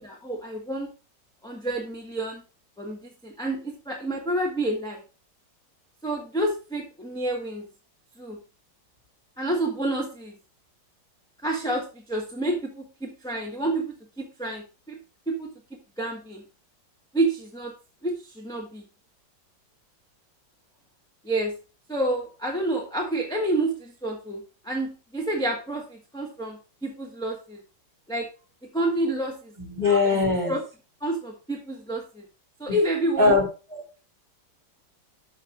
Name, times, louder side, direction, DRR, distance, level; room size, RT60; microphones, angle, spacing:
voice 1, 0.0-0.9 1.4-2.4 2.8-5.0 6.0-7.7 8.2-8.4 9.4-10.3 11.4-15.0 15.3-15.5 16.0-16.4 17.1-17.7 18.0-18.8 21.2-21.5 21.9-27.6 28.1-28.3 28.7-29.5 30.4-30.6 31.0-32.2 32.6-33.4 33.7-34.0, right 1 dB, 5° left, -2 dB, 1.1 m, -29 dB
voice 2, 29.6-30.5 32.7-32.8 33.2-33.4, left 3 dB, 25° right, 1 dB, 2.8 m, -21 dB
6.5 x 5.8 x 4.9 m, 0.33 s
omnidirectional pair, 2.0 m